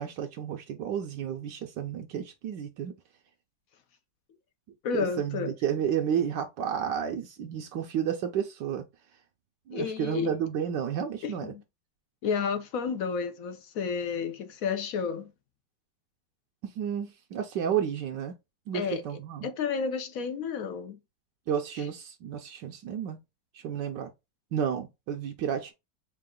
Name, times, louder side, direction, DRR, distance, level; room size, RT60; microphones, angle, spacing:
voice 1, 0.0-2.9 4.9-8.8 9.7-11.5 16.6-18.3 18.7-19.5 21.5-23.2 23.5-24.1 24.5-25.7, right 8 dB, 75° right, 1.3 m, -31 dB
voice 2, 4.8-5.5 9.7-10.3 11.2-11.6 12.2-15.3 18.7-19.0 19.4-21.0, left 6 dB, 65° left, 0.9 m, -31 dB
4.7 x 2.4 x 3.7 m
omnidirectional pair, 2.1 m